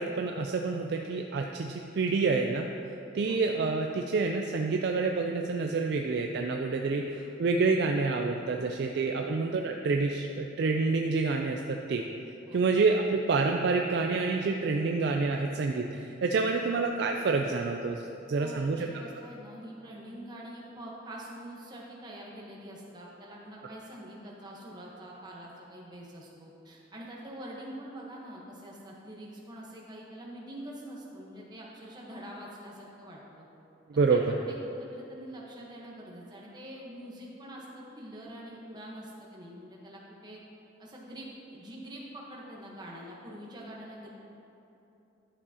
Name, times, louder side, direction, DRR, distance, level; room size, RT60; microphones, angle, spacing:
voice 1, 0.0-2.7 3.1-12.1 12.5-19.0 34.0-34.2, right 4 dB, 60° right, 2 dB, 0.3 m, -28 dB
voice 2, 18.4-33.4 34.1-40.4 40.8-44.1, right 1 dB, 20° right, -4 dB, 1.1 m, -45 dB
11.0 x 6.8 x 2.8 m, 2.9 s
head